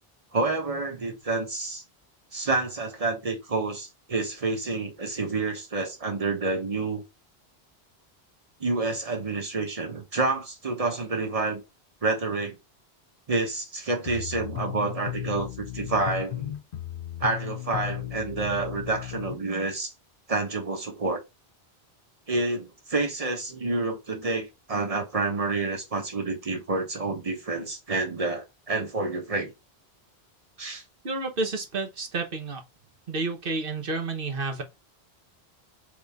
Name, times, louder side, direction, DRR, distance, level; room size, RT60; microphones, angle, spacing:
voice 1, 0.3-1.8 2.3-7.0 8.6-11.6 12.0-12.6 13.3-16.5 17.2-19.9 20.3-21.2 22.3-29.5 30.6-30.8, right 3 dB, 35° right, 1.2 m, -28 dB
sound 1, 14.0-19.4, left 15 dB, 65° left, 0.7 m, -35 dB
voice 2, 31.0-32.6 33.1-34.6, right 3 dB, 60° right, 1.3 m, -30 dB
3.9 x 3.6 x 3.4 m
omnidirectional pair, 1.1 m